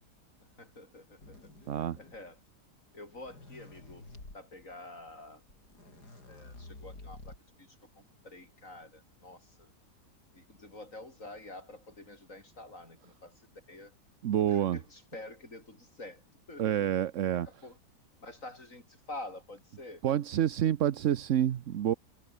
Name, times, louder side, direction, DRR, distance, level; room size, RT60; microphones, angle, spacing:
voice 1, 0.6-1.4 2.0-2.4 2.9-4.1 4.3-5.4 6.2-9.7 10.3-13.4 13.7-13.9 14.5-16.2 16.5-16.9 17.6-17.8 18.2-20.1, left 2 dB, 50° left, 5.4 m, -48 dB
sound 1, 1.2-2.4 3.0-4.4 5.2-5.3 5.5-7.6, left 2 dB, 80° left, 6.6 m, -50 dB
voice 2, 1.7-2.0 14.2-14.8 16.6-17.5 20.0-21.9, right 10 dB, 60° right, 1.0 m, -28 dB
omnidirectional pair, 1.7 m